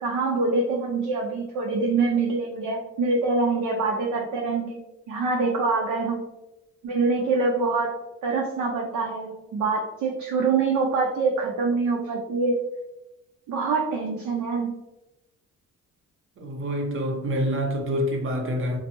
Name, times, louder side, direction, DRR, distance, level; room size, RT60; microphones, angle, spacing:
voice 1, 0.0-4.8 5.1-6.2 6.8-12.6 13.5-14.8, right 4 dB, 80° right, 0.5 m, -25 dB
voice 2, 16.4-18.8, equal, 45° right, 0.7 m, -27 dB
3.2 x 2.0 x 2.9 m
cardioid pair, 90°, 30 cm